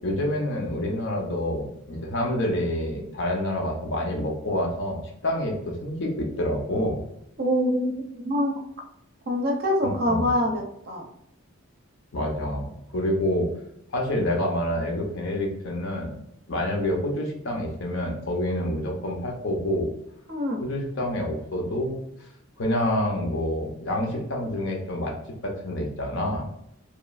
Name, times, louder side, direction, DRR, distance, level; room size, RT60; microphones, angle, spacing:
voice 1, 0.0-7.0 9.8-10.3 12.1-13.5 13.9-16.1 16.5-19.9 20.6-22.0 22.6-25.1 25.4-26.5, left 1 dB, 55° left, 1 dB, 0.6 m, -27 dB
voice 2, 7.4-8.6 9.3-11.0 20.3-20.6, equal, 45° right, 1 dB, 0.5 m, -25 dB
2.9 x 2.3 x 2.3 m, 0.75 s
head